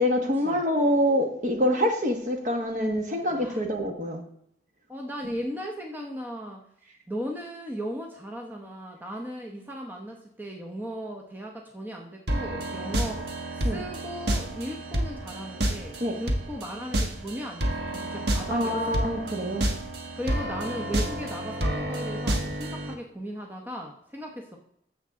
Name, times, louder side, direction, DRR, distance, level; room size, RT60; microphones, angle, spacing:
voice 1, 0.0-4.2 13.6-13.8 16.0-16.2 18.5-19.7, equal, 45° right, 3 dB, 1.4 m, -25 dB
voice 2, 3.3-3.6 4.9-6.6 7.1-13.2 13.5-19.1 20.2-24.6, equal, 10° right, 1 dB, 0.9 m, -37 dB
sound 1, 12.3-22.9, right 1 dB, 65° right, 1.3 m, -30 dB
10.0 x 7.4 x 3.6 m, 0.72 s
head